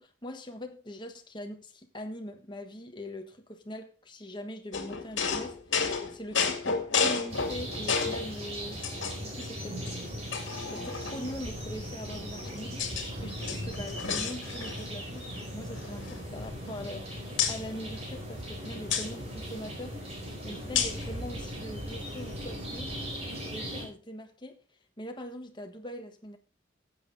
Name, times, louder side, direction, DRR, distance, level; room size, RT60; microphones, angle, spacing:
voice 1, 0.0-5.8 6.1-8.9 9.2-9.8 10.7-20.0 20.4-23.0 23.3-24.6 25.0-26.4, equal, 25° left, 1.3 m, -42 dB
sound 1, 4.7-8.3 8.8-9.5 9.9-10.0 10.3-11.4 12.1-13.1 13.4-14.9 15.2-15.4 15.7-17.0 17.4-17.6 18.9-19.1 20.8-21.1, left 6 dB, 75° left, 2.0 m, -31 dB
sound 2, 7.3-23.9, equal, 30° right, 4.3 m, -38 dB
14.5 x 8.4 x 4.0 m
head